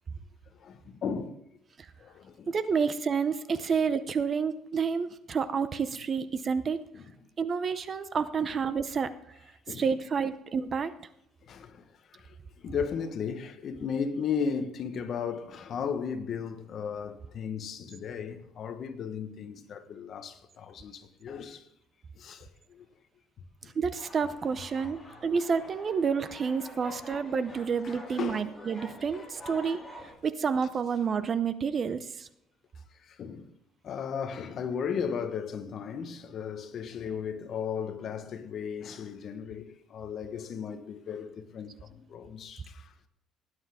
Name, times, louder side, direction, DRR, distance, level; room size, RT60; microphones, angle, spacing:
voice 1, 0.5-1.3 2.0-2.5 3.6-3.7 6.9-7.1 8.4-8.5 9.7-9.9 11.4-21.7 22.1-22.9 23.6-23.7 24.2-24.3 27.8-28.5 33.0-33.5 33.8-42.9, left 6 dB, 45° left, 1.2 m, -36 dB
voice 2, 2.5-6.8 7.4-9.1 9.8-10.9 23.8-29.8 30.2-32.3, right 6 dB, 30° right, 0.6 m, -29 dB
sound 1, 23.9-30.1, left 1 dB, 5° left, 2.8 m, -47 dB
17.5 x 9.8 x 3.6 m
cardioid pair, 155°, 0 cm